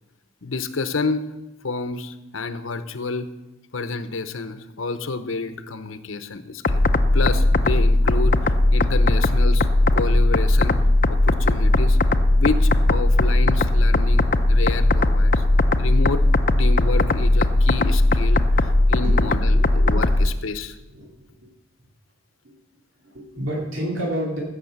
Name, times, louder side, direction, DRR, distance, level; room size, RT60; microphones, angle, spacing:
voice 1, 0.4-1.3 1.6-3.3 3.7-6.9 7.1-10.8 11.1-12.0 12.3-15.5 15.8-16.3 16.6-20.8, left 3 dB, 85° left, 10 dB, 0.9 m, -29 dB
sound 1, 6.6-20.3, left 2 dB, 45° left, 0.6 m, -18 dB
voice 2, 19.0-20.2 20.9-21.5 23.0-24.4, equal, 80° right, -4 dB, 2.9 m, -30 dB
15.0 x 6.6 x 6.6 m, 1.0 s
head